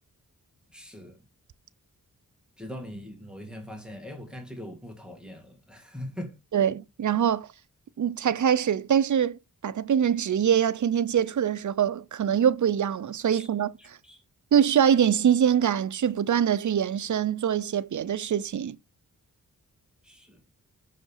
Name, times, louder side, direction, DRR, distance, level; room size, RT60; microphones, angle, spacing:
voice 1, 0.7-1.2 2.6-6.4 13.3-13.5 13.8-14.2 20.0-20.4, left 1 dB, 5° right, 1.8 m, -41 dB
voice 2, 6.5-7.5 8.0-9.4 9.6-13.7 14.5-18.8, right 9 dB, 60° right, 0.6 m, -24 dB
6.5 x 5.2 x 5.5 m
wide cardioid pair, 135°, 33 cm